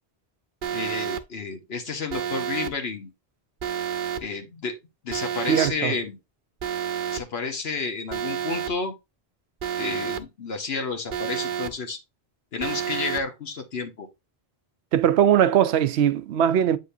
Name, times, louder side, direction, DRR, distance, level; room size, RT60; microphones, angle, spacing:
Alarm, 0.6-1.2 2.1-2.7 3.6-4.2 5.1-5.7 6.6-7.2 8.1-8.7 9.6-10.2 11.1-11.7 12.6-13.2, right 9 dB, 55° right, 0.9 m, -29 dB
voice 1, 0.7-3.1 4.2-4.8 5.0-6.2 7.1-8.9 9.8-12.0 12.5-14.1, left 4 dB, 70° left, 1.3 m, -31 dB
voice 2, 5.5-5.9 14.9-16.8, right 9 dB, 90° right, 0.9 m, -20 dB
8.4 x 5.3 x 2.6 m
omnidirectional pair, 1.1 m